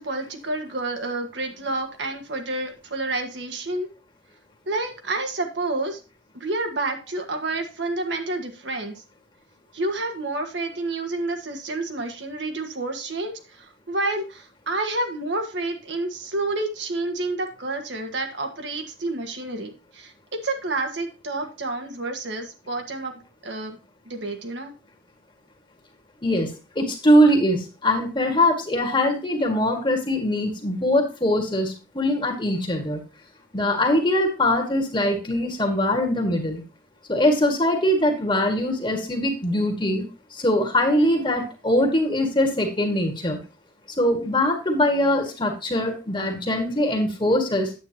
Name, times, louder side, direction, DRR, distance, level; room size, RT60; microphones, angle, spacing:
voice 1, 0.0-3.9 4.7-6.0 6.3-9.0 9.7-23.8 24.0-24.7, right 2 dB, 65° right, 4 dB, 1.5 m, -29 dB
voice 2, 26.8-33.0 33.5-36.6 37.1-43.4 44.0-47.7, left 1 dB, 25° left, 3 dB, 1.8 m, -22 dB
9.4 x 8.3 x 2.9 m, 0.32 s
head